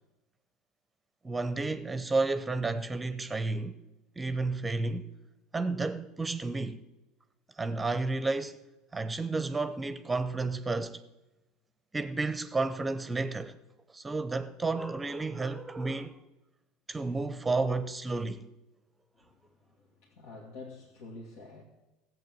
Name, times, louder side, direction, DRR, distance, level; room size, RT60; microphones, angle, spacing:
voice 1, 1.2-3.8 4.2-5.1 5.5-6.8 7.6-8.6 8.9-11.0 11.9-13.5 13.9-16.2 16.9-18.5, right 3 dB, 15° right, 0.8 m, -31 dB
voice 2, 20.0-21.6, left 3 dB, 65° left, 2.2 m, -47 dB
15.5 x 7.9 x 7.7 m
hypercardioid pair, 75°, 0 cm